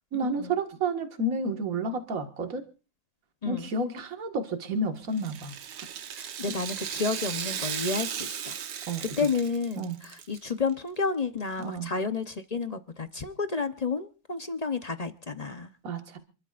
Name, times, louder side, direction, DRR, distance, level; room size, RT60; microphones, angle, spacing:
voice 1, 0.1-2.6 3.5-5.5 8.9-9.0 9.8-10.0 11.6-11.9 15.8-16.2, right 2 dB, 55° right, 5 dB, 2.1 m, -30 dB
voice 2, 3.4-3.7 6.2-8.6 9.0-15.7, left 4 dB, 35° left, 9 dB, 0.7 m, -31 dB
Rattle (instrument), 5.1-10.4 10.7-10.8 11.6-11.7, right 8 dB, 80° right, 1.6 m, -36 dB
28.5 x 12.5 x 2.5 m, 0.35 s
omnidirectional pair, 1.8 m